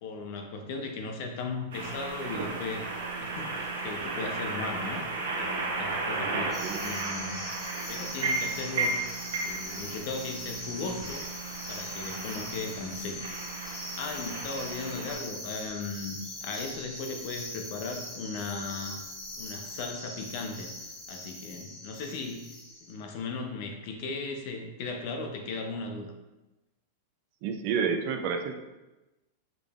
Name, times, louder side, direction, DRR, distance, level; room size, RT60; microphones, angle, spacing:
voice 1, 0.0-2.9 3.2-5.0 5.4-7.4 7.9-9.0 9.4-11.3 11.7-13.2 13.9-19.0 19.3-20.7 21.1-22.5 22.8-26.1, left 3 dB, 50° left, 4 dB, 0.5 m, -37 dB
sound 1, 1.7-15.1, right 3 dB, 80° right, 0.8 m, -34 dB
voice 2, 6.2-7.0 27.4-28.5, right 6 dB, 50° right, 5 dB, 0.4 m, -31 dB
sound 2, 6.5-22.9, left 1 dB, 10° left, 1.0 m, -41 dB
3.7 x 3.4 x 2.4 m, 1.0 s
supercardioid pair, 150°, 0 cm